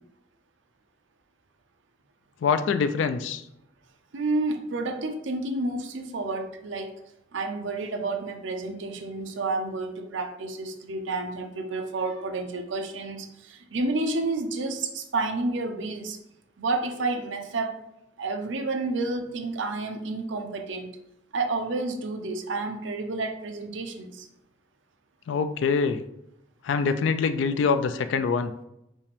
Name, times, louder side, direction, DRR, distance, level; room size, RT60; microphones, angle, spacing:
voice 1, 2.4-3.4 25.3-26.0 26.6-28.5, left 5 dB, 75° left, 10 dB, 0.3 m, -24 dB
voice 2, 4.1-6.9 7.3-16.2 16.6-17.7 18.2-21.0 21.3-24.3, right 3 dB, 75° right, 5 dB, 0.6 m, -30 dB
5.4 x 2.5 x 3.4 m, 0.81 s
head